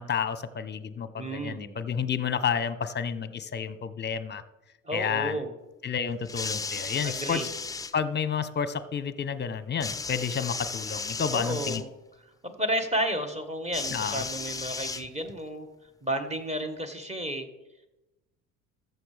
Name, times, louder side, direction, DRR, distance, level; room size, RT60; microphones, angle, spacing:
voice 1, 0.0-4.4 4.9-5.4 5.8-7.5 7.9-11.8 13.9-14.2, left 7 dB, 25° left, 14 dB, 0.8 m, -30 dB
voice 2, 1.2-1.7 4.8-5.5 7.0-7.5 11.3-11.9 12.4-15.7 16.0-17.5, right 1 dB, 15° right, 7 dB, 1.5 m, -32 dB
sound 1, 6.2-7.9 9.8-11.8 13.7-15.4 16.4-16.5, left 4 dB, 10° left, 0.4 m, -35 dB
14.0 x 6.9 x 3.4 m, 1.0 s
hypercardioid pair, 65°, 40 cm